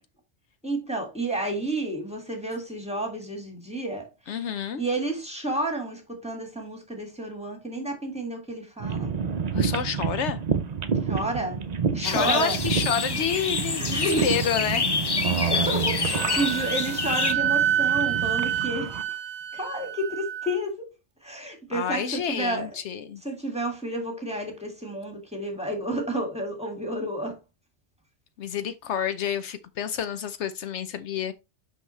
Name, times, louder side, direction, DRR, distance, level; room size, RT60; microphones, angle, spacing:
voice 1, 0.6-4.1 4.8-9.1 11.1-11.6 11.9-12.6 13.7-14.3 15.0-15.2 15.5-19.2 19.5-20.9 21.2-22.8 23.2-27.4, right 1 dB, 5° right, 1.7 m, -30 dB
voice 2, 4.3-4.8 9.5-10.4 12.0-14.8 21.7-23.2 28.4-31.3, left 8 dB, 75° left, 0.9 m, -29 dB
sound 1, 8.8-19.0, right 6 dB, 45° right, 0.6 m, -29 dB
sound 2, 12.0-17.3, left 4 dB, 40° left, 0.3 m, -28 dB
Wind instrument woodwind instrument, 16.1-20.6, right 10 dB, 75° right, 0.9 m, -28 dB
5.8 x 5.6 x 3.1 m
omnidirectional pair, 1.2 m